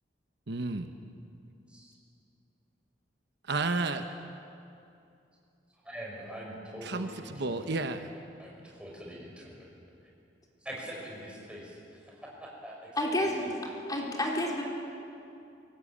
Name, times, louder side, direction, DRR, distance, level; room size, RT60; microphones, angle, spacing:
voice 1, 0.5-0.9 3.5-4.0 6.8-8.1, right 3 dB, 65° right, 7 dB, 1.1 m, -31 dB
voice 2, 5.8-7.7 8.4-9.7 10.6-13.6, equal, 5° right, -3 dB, 5.9 m, -44 dB
voice 3, 13.0-13.5 13.9-14.6, left 1 dB, 20° left, -1 dB, 3.4 m, -29 dB
23.5 x 18.0 x 8.7 m, 2.6 s
head